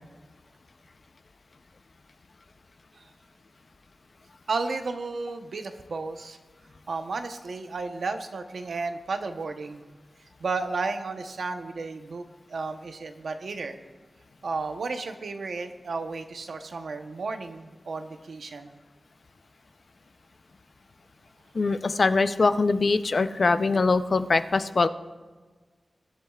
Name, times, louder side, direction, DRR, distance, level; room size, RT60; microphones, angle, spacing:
voice 1, 4.5-6.4 6.9-9.8 10.4-13.8 14.4-18.7, right 3 dB, 85° right, 6 dB, 0.9 m, -33 dB
voice 2, 21.5-24.9, left 3 dB, 60° left, 10 dB, 0.6 m, -22 dB
23.0 x 11.5 x 2.4 m, 1.4 s
wide cardioid pair, 85°, 0 cm